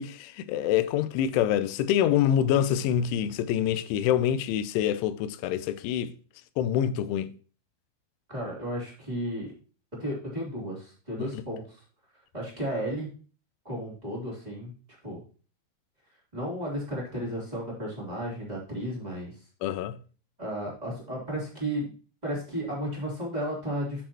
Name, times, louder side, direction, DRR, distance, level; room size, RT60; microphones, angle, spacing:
voice 1, 0.0-6.1 6.6-7.3 19.6-20.0, left 10 dB, 85° left, 3.0 m, -26 dB
voice 2, 8.3-9.5 10.0-11.8 12.3-13.1 13.6-14.7 15.0-15.2 16.3-19.3 20.4-21.9 22.2-24.0, equal, 10° right, 2.2 m, -33 dB
10.0 x 6.9 x 2.9 m
omnidirectional pair, 5.4 m